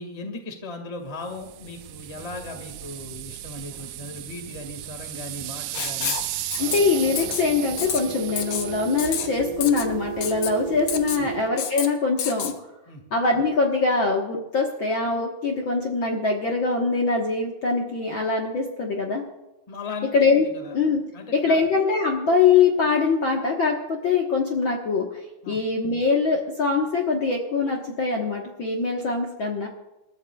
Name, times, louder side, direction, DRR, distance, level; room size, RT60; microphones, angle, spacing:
voice 1, 0.0-6.1 11.2-11.3 12.9-13.0 19.7-20.1 20.5-20.7 21.1-21.6 25.4-25.6, left 2 dB, 15° left, 4 dB, 1.3 m, -37 dB
sound 1, 1.2-11.5, right 13 dB, 80° right, 2.1 m, -36 dB
Writing, 5.7-6.3 6.5-6.8 7.2-7.4 7.8-8.0 8.4-8.7 9.0-9.3 9.6-9.9 10.2-10.5 10.9-11.2 11.6-11.9 12.2-12.5, left 9 dB, 65° left, 1.6 m, -29 dB
voice 2, 6.6-12.5 13.1-19.2 20.1-21.0 21.3-25.2 25.5-29.7, left 4 dB, 50° left, -1 dB, 1.6 m, -23 dB
sound 2, 6.6-11.4, right 9 dB, 55° right, 2.2 m, -34 dB
28.5 x 13.0 x 2.4 m, 0.97 s
omnidirectional pair, 3.6 m